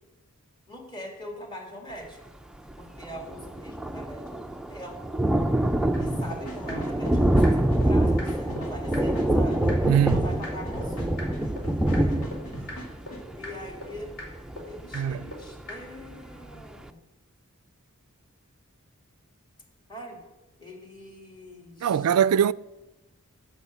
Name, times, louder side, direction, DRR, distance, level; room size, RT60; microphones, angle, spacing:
voice 1, 0.7-2.2 2.8-5.2 6.0-9.6 10.0-11.3 13.4-14.1 14.6-17.0 19.9-20.2 20.6-22.0, equal, 20° left, 2.2 m, -42 dB
Thunder, 2.7-2.8 3.0-15.6 16.1-16.2 16.5-16.6, right 1 dB, 5° right, 0.4 m, -26 dB
sound 1, 5.9-6.0 6.3-6.4 6.7-6.8 7.1-7.2 7.4-7.5 7.8-7.9 8.2-8.3 8.6-8.7 8.9-9.0 9.3-9.4 9.7-9.8 10.1-10.2 10.4-10.5 10.8-10.9 11.2-11.3 11.6-11.7 11.9-12.0 12.3-12.4 12.7-12.8 13.1-13.2 13.4-13.5 13.8-13.9 14.2-14.3 14.6-14.7 14.9-15.0 15.3-15.4 15.7-15.8, left 1 dB, 55° left, 4.8 m, -38 dB
sound 2, 6.0-13.2, right 1 dB, 90° left, 2.2 m, -40 dB
voice 2, 9.8-10.3 14.9-15.3 21.8-22.5, right 8 dB, 90° right, 0.3 m, -22 dB
15.5 x 6.2 x 7.3 m
head